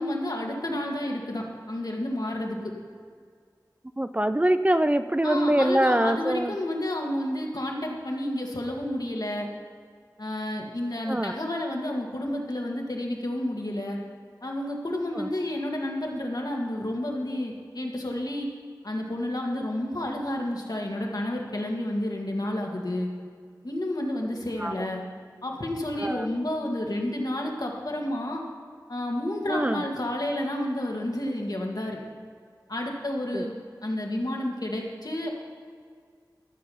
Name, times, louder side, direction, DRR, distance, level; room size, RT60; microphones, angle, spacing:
voice 1, 0.0-2.7 5.2-9.5 10.2-14.0 14.4-18.5 18.8-23.1 23.6-25.0 25.4-28.4 28.9-32.0 32.7-33.5 33.8-35.3, left 1 dB, 60° left, 0 dB, 1.8 m, -30 dB
voice 2, 4.0-6.6 11.1-11.4 15.1-15.3 24.6-24.9 26.0-26.3 29.5-29.8 33.3-33.5, right 1 dB, 20° right, 10 dB, 0.4 m, -24 dB
13.5 x 7.0 x 5.6 m, 2.1 s
wide cardioid pair, 40°, 8 cm